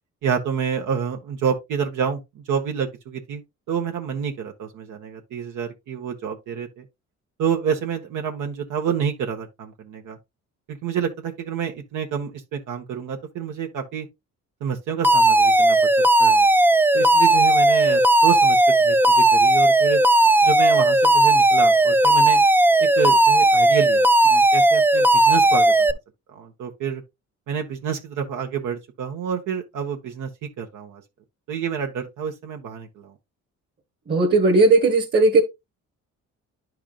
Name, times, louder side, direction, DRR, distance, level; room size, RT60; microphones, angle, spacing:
voice 1, 0.2-3.4 3.7-6.8 7.4-10.2 10.7-14.1 14.6-15.8 16.2-16.5 16.9-20.0 20.4-22.4 23.0-26.0 26.3-27.0 27.5-30.3 30.6-31.0 31.5-33.1, right 7 dB, 80° right, 1.4 m, -28 dB
Alarm, 15.0-25.9, right 2 dB, 5° right, 0.4 m, -16 dB
voice 2, 34.1-35.4, right 3 dB, 35° right, 1.3 m, -16 dB
10.5 x 4.7 x 2.4 m
cardioid pair, 90°, 30 cm